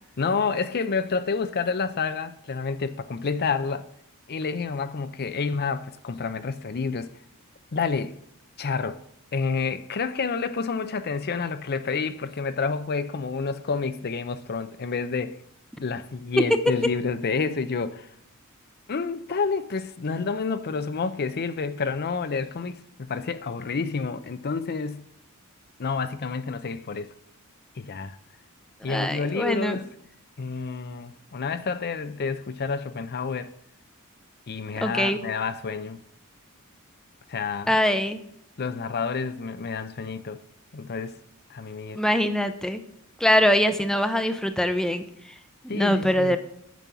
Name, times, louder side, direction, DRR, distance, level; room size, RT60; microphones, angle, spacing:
voice 1, 0.2-3.9 4.3-7.1 7.7-8.1 8.6-9.0 9.3-15.4 15.8-18.1 18.9-25.1 25.8-27.1 27.8-28.2 28.8-29.9 30.4-33.5 34.5-36.0 37.3-37.8 38.6-40.4 40.7-41.2 41.5-42.0 45.7-46.4, left 5 dB, 50° left, 0.6 m, -29 dB
voice 2, 28.9-29.8 34.8-35.2 37.7-38.2 41.9-42.8 43.2-45.0 45.6-46.4, equal, 5° left, 0.7 m, -23 dB
9.1 x 6.3 x 6.9 m
head